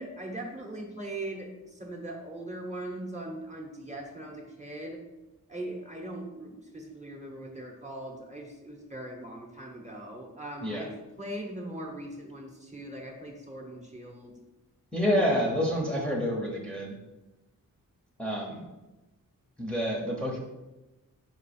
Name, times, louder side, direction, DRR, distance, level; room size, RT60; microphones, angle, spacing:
voice 1, 0.0-5.0 5.5-14.4, right 1 dB, 20° right, 0 dB, 0.9 m, -40 dB
voice 2, 14.9-17.0 18.2-18.7 19.6-20.4, equal, 5° left, -2 dB, 0.8 m, -28 dB
5.4 x 4.7 x 4.2 m, 1.1 s
wide cardioid pair, 150°, 35 cm